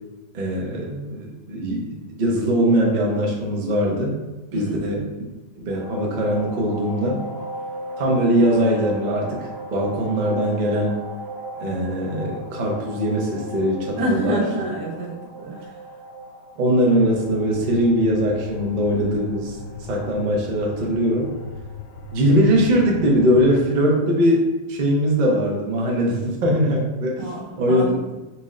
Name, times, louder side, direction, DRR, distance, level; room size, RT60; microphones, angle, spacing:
voice 1, 0.3-4.2 4.5-5.1 5.6-7.2 8.0-11.0 11.6-14.4 16.6-19.6 19.9-21.3 22.1-27.3 27.6-27.9, equal, 65° right, -1 dB, 0.4 m, -21 dB
voice 2, 4.5-4.8 14.0-15.8 27.2-28.2, right 1 dB, 85° right, -2 dB, 1.5 m, -28 dB
sound 1, 5.7-24.3, right 1 dB, 85° left, 1.9 m, -38 dB
sound 2, 17.3-23.6, left 4 dB, 70° left, 1.0 m, -37 dB
4.3 x 2.0 x 3.7 m, 1.1 s
omnidirectional pair, 1.9 m